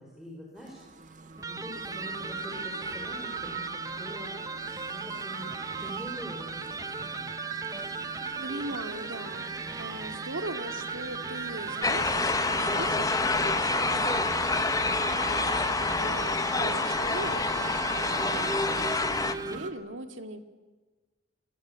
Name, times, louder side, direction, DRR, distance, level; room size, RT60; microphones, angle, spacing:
voice 1, 0.0-4.6 4.9-5.5 5.8-7.3, equal, ahead, -3 dB, 5.0 m, -44 dB
sound 1, 0.6-19.7, right 4 dB, 40° right, 1.8 m, -40 dB
Electric guitar, 1.4-19.8, right 4 dB, 20° right, 1.0 m, -38 dB
voice 2, 8.0-20.4, right 2 dB, 85° right, 8 dB, 2.3 m, -40 dB
sound 2, 11.8-19.3, left 3 dB, 20° left, 1.0 m, -27 dB
28.5 x 24.5 x 8.2 m, 1.3 s
head